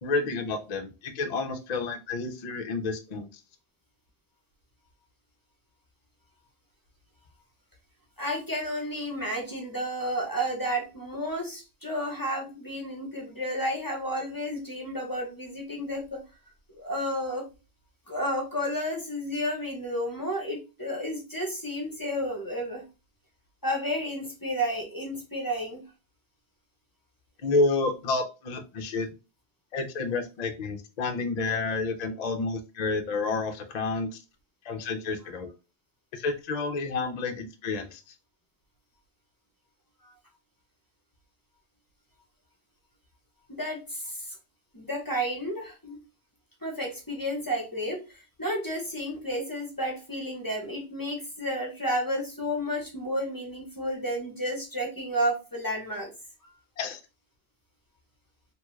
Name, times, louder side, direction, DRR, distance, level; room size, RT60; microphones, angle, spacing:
voice 1, 0.0-3.3 27.4-29.1 29.7-34.1 34.6-35.5 36.1-38.1 56.8-57.0, left 3 dB, 55° left, 5 dB, 0.5 m, -30 dB
voice 2, 8.2-16.2 16.7-17.5 18.1-22.8 23.6-25.8 40.0-40.1 43.5-44.3 44.7-46.0 46.6-56.1 56.4-56.5, equal, 20° left, 0 dB, 0.8 m, -31 dB
3.0 x 2.3 x 3.1 m, 0.29 s
omnidirectional pair, 1.1 m